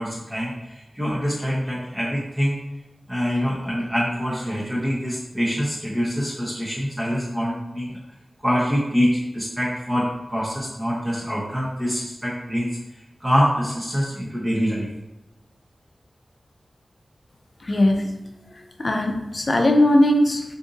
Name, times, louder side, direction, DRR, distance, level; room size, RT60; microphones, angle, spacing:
voice 1, 0.0-2.5 3.1-7.9 8.4-9.1 9.3-12.7 13.2-14.9, equal, 15° right, -7 dB, 0.8 m, -25 dB
voice 2, 17.6-18.1 18.5-20.4, left 1 dB, 50° left, 3 dB, 0.5 m, -19 dB
2.6 x 2.6 x 3.7 m, 0.97 s
cardioid pair, 50°, 0 cm